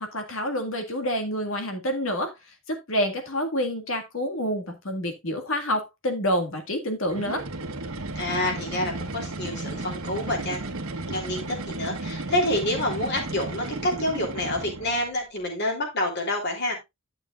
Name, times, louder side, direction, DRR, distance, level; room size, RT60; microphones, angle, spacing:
voice 1, 0.0-2.3 2.7-7.5, equal, 70° left, 1.9 m, -28 dB
sound 1, 7.1-15.1, right 2 dB, 90° right, 1.2 m, -34 dB
voice 2, 8.1-10.6 11.1-16.8, left 1 dB, 55° left, 3.1 m, -28 dB
11.5 x 6.8 x 2.4 m
head